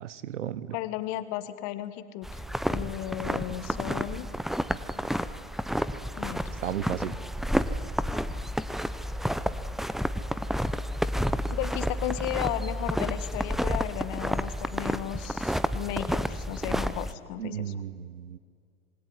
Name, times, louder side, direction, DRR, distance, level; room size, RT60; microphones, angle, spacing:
voice 1, 0.0-0.6 6.6-7.1 17.4-18.4, right 9 dB, 80° right, 17 dB, 1.1 m, -34 dB
voice 2, 0.7-2.4 2.7-4.3 6.2-6.7 11.5-17.8, left 14 dB, 50° left, 12 dB, 1.8 m, -35 dB
sound 1, 2.2-17.1, equal, ahead, 0.9 m, -30 dB
26.5 x 21.0 x 9.8 m, 2.1 s
hypercardioid pair, 90°, 36 cm